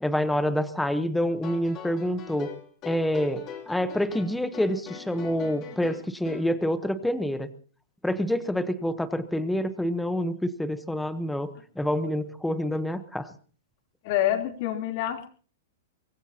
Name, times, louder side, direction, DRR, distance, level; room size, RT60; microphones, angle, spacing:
voice 1, 0.0-2.5 2.8-7.5 8.0-13.3, equal, ahead, 11 dB, 1.0 m, -27 dB
sound 1, 1.3-6.5, left 8 dB, 25° left, 3.9 m, -42 dB
voice 2, 14.0-15.3, left 12 dB, 40° left, 3 dB, 3.3 m, -27 dB
24.5 x 20.5 x 2.9 m, 0.43 s
hypercardioid pair, 165°, 0 cm